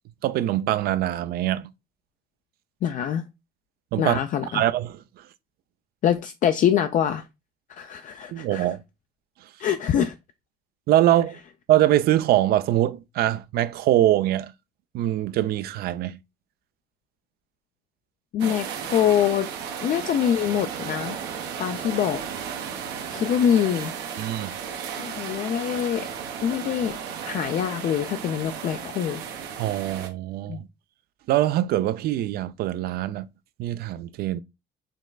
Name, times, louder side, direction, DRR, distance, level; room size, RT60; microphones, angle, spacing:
voice 1, 0.2-1.7 3.9-5.0 8.3-8.8 10.9-11.4 11.7-14.5 14.9-16.2 24.2-24.6 29.6-30.7 31.3-33.3 33.6-34.4, right 13 dB, 65° right, 0.4 m, -23 dB
voice 2, 2.8-3.2 4.0-4.6 6.0-7.3 7.7-8.7 9.6-10.1 18.3-19.5 19.8-21.2 21.6-22.2 23.1-23.9 24.9-26.1 26.4-27.0 27.2-29.2 30.5-30.6, left 9 dB, 50° left, 0.4 m, -24 dB
sound 1, 18.4-30.1, right 7 dB, 85° right, 0.9 m, -34 dB
5.2 x 3.1 x 2.3 m
cardioid pair, 110°, 17 cm